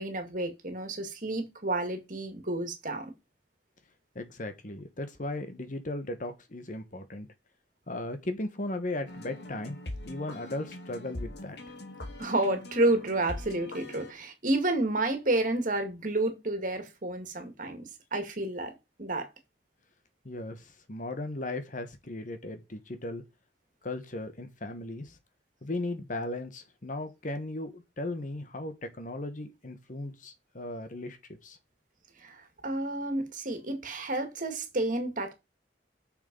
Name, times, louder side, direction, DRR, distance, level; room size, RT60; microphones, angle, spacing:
voice 1, 0.0-3.1 12.2-19.3 32.2-35.3, right 2 dB, 50° right, 2.1 m, -30 dB
voice 2, 4.1-7.3 7.9-9.8 10.1-11.7 20.2-23.2 23.8-25.2 25.6-31.6, left 2 dB, 45° left, 1.3 m, -37 dB
sound 1, 9.1-14.1, left 1 dB, 70° left, 1.8 m, -42 dB
6.8 x 6.6 x 5.4 m
head